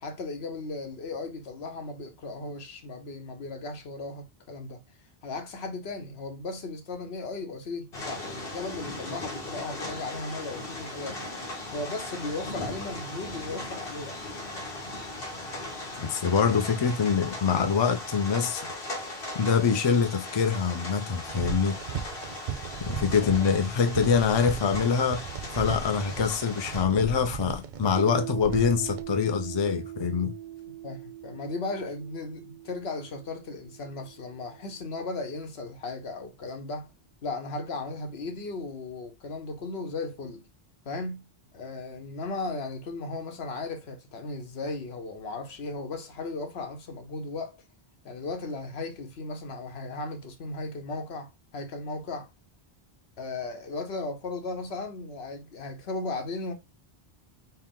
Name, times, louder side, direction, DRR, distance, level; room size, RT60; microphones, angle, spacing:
voice 1, 0.0-4.8 5.2-11.3 11.7-14.2 23.1-23.6 30.8-36.9 37.2-40.4 40.8-41.2 41.5-47.6 48.0-52.3 53.2-56.5, left 3 dB, 80° left, 1.1 m, -36 dB
sound 1, 7.9-26.8, left 2 dB, 65° left, 1.4 m, -38 dB
voice 2, 16.0-18.7 19.3-21.8 22.8-25.2 25.6-30.3, left 6 dB, 45° left, 0.3 m, -25 dB
sound 2, 21.2-29.0, right 7 dB, 60° right, 0.6 m, -37 dB
Piano, 27.9-35.2, right 12 dB, 20° left, 0.9 m, -41 dB
4.5 x 2.1 x 3.6 m
omnidirectional pair, 1.0 m